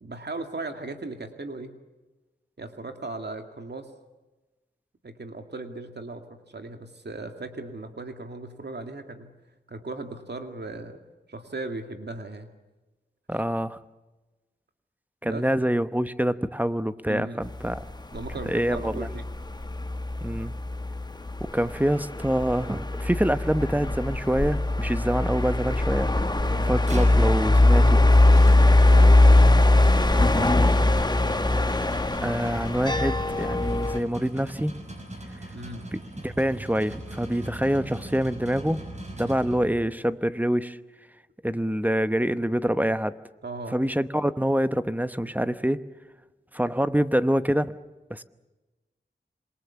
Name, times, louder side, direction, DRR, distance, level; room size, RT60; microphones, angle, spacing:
voice 1, 0.0-1.8 2.6-3.9 5.0-9.3 9.7-11.0 11.3-12.5 15.2-15.4 17.1-17.5 18.1-19.2 26.4-26.7 28.9-29.5 30.0-30.8 35.5-35.9 43.4-43.8, right 2 dB, 65° right, 6 dB, 2.3 m, -37 dB
voice 2, 13.3-13.8 15.2-17.8 18.5-19.1 20.2-20.5 21.4-26.1 26.6-28.1 32.2-34.8 36.2-38.8 39.2-40.8 41.4-43.2 43.7-45.8 46.5-47.8 48.1-48.2, equal, 10° right, 12 dB, 1.0 m, -26 dB
sound 1, 17.4-34.0, left 2 dB, 20° left, 1.1 m, -21 dB
sound 2, 26.9-40.0, right 1 dB, 40° right, 6.0 m, -40 dB
27.0 x 22.5 x 7.1 m, 1.1 s
wide cardioid pair, 65°, 19 cm